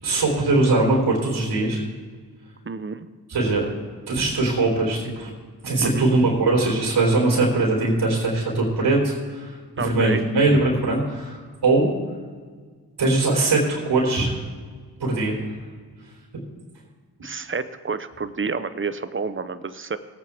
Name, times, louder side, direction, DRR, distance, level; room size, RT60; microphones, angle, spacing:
voice 1, 0.0-1.8 3.3-3.7 4.1-5.3 5.6-11.9 13.0-14.4 15.0-15.4, right 2 dB, 75° right, -3 dB, 3.8 m, -21 dB
voice 2, 2.7-3.1 5.8-6.0 9.8-10.2 17.2-20.0, right 4 dB, 30° right, 13 dB, 0.9 m, -29 dB
18.0 x 8.8 x 3.6 m, 1.5 s
supercardioid pair, 40°, 40 cm